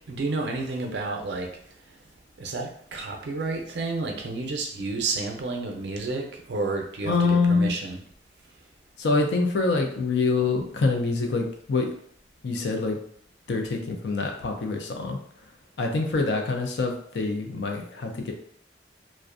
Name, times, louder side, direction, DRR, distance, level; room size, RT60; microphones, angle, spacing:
voice 1, 0.0-1.5 2.4-7.1 7.5-8.0, right 3 dB, 70° right, 2 dB, 0.5 m, -30 dB
voice 2, 7.0-7.7 9.0-11.9 12.4-13.0 13.5-15.5 15.8-18.3, left 3 dB, 75° left, 3 dB, 0.4 m, -25 dB
2.4 x 2.1 x 2.4 m, 0.62 s
head